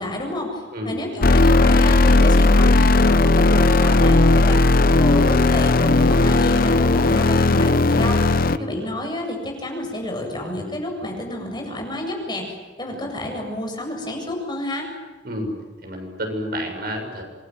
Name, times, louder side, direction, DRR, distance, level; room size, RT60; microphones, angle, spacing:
voice 1, 0.0-8.3 8.6-14.9, left 1 dB, 25° left, 1 dB, 7.9 m, -30 dB
sound 1, 1.2-8.6, left 2 dB, 55° left, 0.8 m, -16 dB
voice 2, 8.5-9.1 15.2-15.5 15.8-17.2, equal, 55° right, 3 dB, 7.4 m, -30 dB
28.0 x 23.0 x 9.3 m, 1.3 s
head